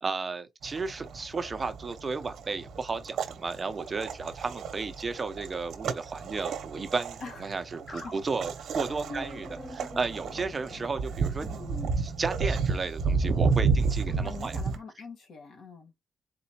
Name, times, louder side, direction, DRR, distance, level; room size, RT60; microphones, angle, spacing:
voice 1, 0.0-9.5 9.7-11.5 12.0-14.6, right 4 dB, 30° right, 0.7 m, -33 dB
sound 1, 0.6-14.8, right 5 dB, 75° right, 0.8 m, -32 dB
sound 2, 7.9-12.8, left 2 dB, 25° left, 1.0 m, -46 dB
voice 2, 14.1-15.9, left 4 dB, 70° left, 1.7 m, -42 dB
4.1 x 3.9 x 2.8 m
cardioid pair, 130°, 0 cm